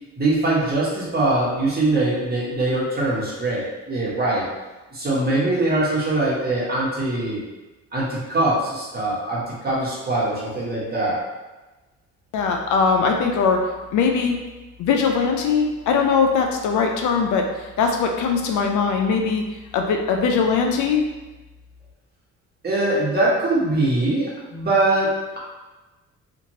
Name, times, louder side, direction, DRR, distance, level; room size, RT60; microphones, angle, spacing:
voice 1, 0.2-4.5 4.9-7.4 7.9-11.2 22.6-25.4, right 2 dB, 30° right, -6 dB, 1.2 m, -22 dB
voice 2, 12.3-13.6 13.9-14.4 14.8-19.4 19.7-21.0, left 5 dB, 80° left, 3 dB, 0.5 m, -20 dB
2.9 x 2.5 x 2.7 m, 1.1 s
cardioid pair, 90°, 30 cm